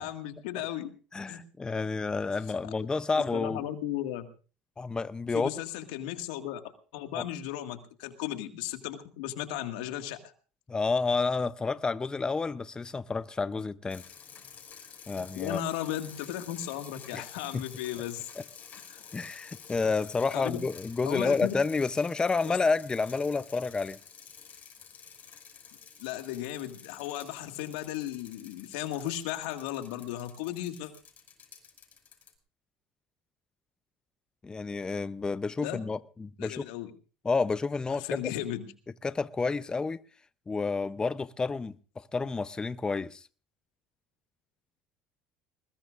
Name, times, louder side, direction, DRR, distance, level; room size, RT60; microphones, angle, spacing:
voice 1, 0.0-0.9 1.3-1.4 2.6-2.7 3.1-4.3 5.3-6.6 6.9-10.2 15.1-18.3 18.9-19.0 20.3-20.6 21.1-21.5 22.4-22.6 26.0-30.9 35.6-35.8 36.4-36.9 37.9-38.7, left 12 dB, 85° left, 1.9 m, -35 dB
voice 2, 1.1-3.6 4.8-5.5 7.1-7.3 10.7-14.0 15.1-15.6 17.1-17.2 17.5-17.6 18.4-18.5 19.1-24.0 34.4-36.7 37.2-38.2 39.0-40.0 40.5-41.7 42.1-43.3, left 4 dB, 20° left, 0.6 m, -30 dB
sound 1, 13.9-32.3, left 7 dB, 45° left, 5.7 m, -50 dB
21.0 x 20.5 x 2.5 m
supercardioid pair, 90°, 4 cm